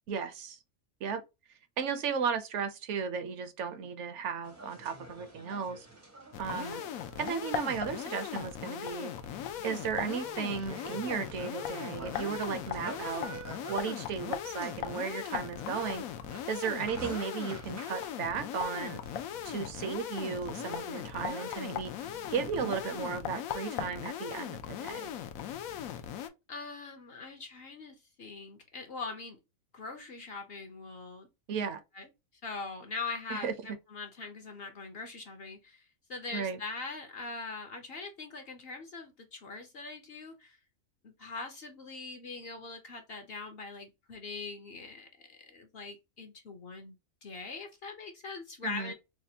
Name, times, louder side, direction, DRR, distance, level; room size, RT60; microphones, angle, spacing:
voice 1, 0.1-0.6 1.0-1.2 1.8-5.9 6.4-6.8 7.2-9.1 9.6-13.3 13.7-16.0 16.5-19.0 19.4-21.9 22.3-25.1 31.5-31.8 33.3-33.5 36.3-36.6 48.6-48.9, right 6 dB, 65° right, 0.8 m, -35 dB
sound 1, 4.4-23.3, right 2 dB, 20° right, 0.4 m, -49 dB
sound 2, 6.3-26.3, left 10 dB, 90° left, 1.0 m, -39 dB
voice 2, 6.5-6.9 26.5-29.4 29.7-31.3 31.9-32.1 32.4-33.5 33.9-40.6 41.0-46.9 47.2-48.9, left 4 dB, 60° left, 0.7 m, -42 dB
4.1 x 2.1 x 2.7 m
omnidirectional pair, 1.4 m